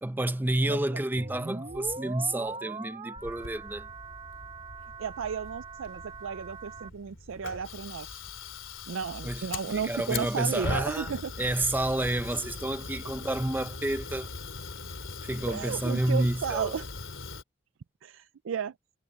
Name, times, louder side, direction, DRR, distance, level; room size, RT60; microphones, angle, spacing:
voice 1, 0.0-3.9 9.2-11.1 11.4-14.4 15.2-16.7, right 1 dB, 10° right, 0.6 m, -30 dB
voice 2, 0.7-1.0 5.0-8.2 8.9-11.3 15.5-16.9 18.0-18.7, right 6 dB, 85° right, 0.4 m, -34 dB
sound 1, 1.2-6.9, right 3 dB, 30° right, 1.0 m, -41 dB
Fire, 3.2-17.4, left 4 dB, 80° left, 2.9 m, -40 dB
head